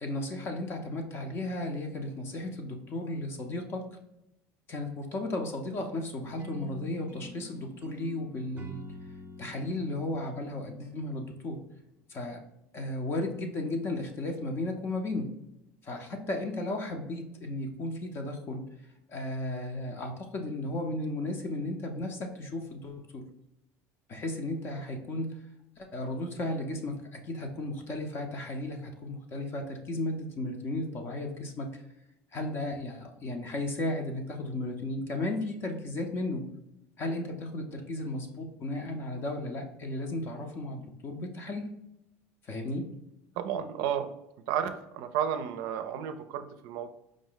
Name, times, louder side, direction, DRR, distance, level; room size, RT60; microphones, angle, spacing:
voice 1, 0.0-3.9 4.7-8.8 9.4-11.6 12.1-12.4 12.7-15.3 15.8-18.7 19.1-23.2 24.1-25.4 25.8-31.8 32.3-36.5 37.0-41.7 42.4-42.9, left 1 dB, 35° left, 3 dB, 0.6 m, -34 dB
sound 1, 6.4-11.5, left 1 dB, 30° right, 0.8 m, -47 dB
voice 2, 43.4-44.1 44.5-46.9, right 9 dB, 70° right, 8 dB, 0.4 m, -32 dB
4.9 x 2.1 x 3.8 m, 0.86 s
cardioid pair, 130°, 7 cm